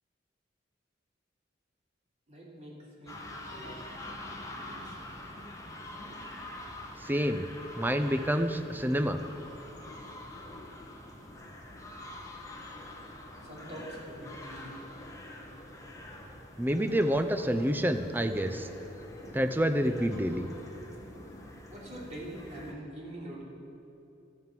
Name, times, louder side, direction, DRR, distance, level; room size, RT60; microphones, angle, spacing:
voice 1, 2.3-3.9 4.4-5.0 13.4-14.9 21.7-23.4, right 1 dB, 35° right, -5 dB, 3.1 m, -45 dB
sound 1, 3.1-22.7, left 1 dB, 15° left, 1.3 m, -45 dB
voice 2, 7.0-7.5 7.8-9.2 16.6-18.7 19.3-20.5, equal, 10° right, 8 dB, 0.5 m, -28 dB
13.0 x 9.6 x 7.4 m, 2.9 s
head